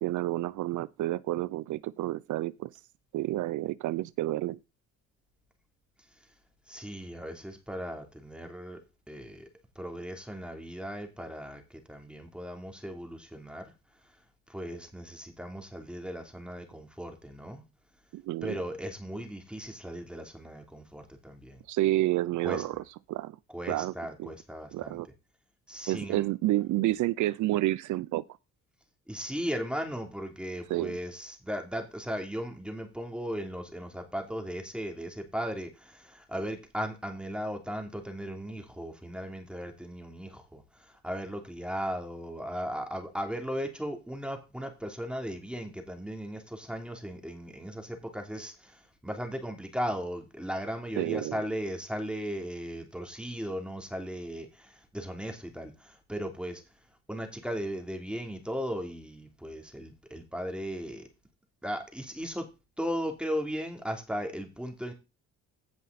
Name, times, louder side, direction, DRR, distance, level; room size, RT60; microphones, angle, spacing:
voice 1, 0.0-2.7 3.1-4.6 18.1-18.6 21.7-22.8 23.1-23.4 23.7-23.9 24.2-24.3 24.7-25.1 25.9-28.2 30.7-31.0 51.0-51.4, right 16 dB, 75° right, 0.5 m, -29 dB
voice 2, 6.7-9.5 9.7-13.7 14.5-17.6 18.4-21.6 22.4-22.6 23.5-25.0 25.7-26.2 29.1-56.6 57.1-61.1 61.6-62.5 62.8-64.9, equal, 5° right, 3.0 m, -37 dB
16.0 x 5.5 x 4.1 m
cardioid pair, 90°, 30 cm